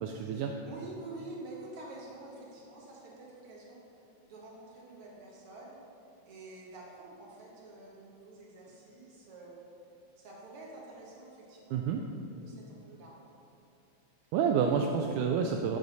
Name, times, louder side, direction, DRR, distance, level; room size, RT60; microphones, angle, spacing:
voice 1, 0.0-0.6 11.7-12.0 14.3-15.8, right 6 dB, 80° right, 3 dB, 2.0 m, -29 dB
voice 2, 0.6-3.9 4.3-5.8 6.3-9.5 10.2-11.8 12.4-13.2, right 2 dB, 50° right, -4 dB, 2.2 m, -48 dB
12.0 x 4.0 x 6.5 m, 2.7 s
omnidirectional pair, 3.7 m